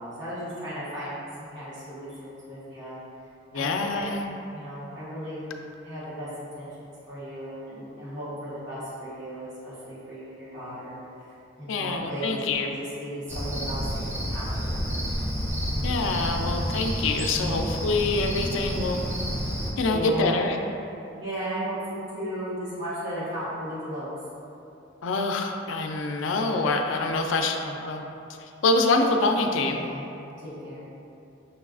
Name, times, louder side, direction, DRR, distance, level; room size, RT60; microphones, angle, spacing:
voice 1, 0.0-3.0 3.5-4.3 4.5-5.4 5.8-6.3 6.6-11.3 11.6-14.9 17.3-17.5 19.8-20.4 21.2-24.1 29.8-30.1 30.4-30.9, equal, 65° right, -10 dB, 1.1 m, -35 dB
voice 2, 3.5-4.3 11.7-12.7 15.8-19.0 19.8-20.6 25.0-28.0 28.4-29.8, left 3 dB, 80° left, 3 dB, 0.4 m, -25 dB
Cricket, 13.3-19.7, equal, 15° right, 0.4 m, -29 dB
6.5 x 2.3 x 2.4 m, 2.8 s
head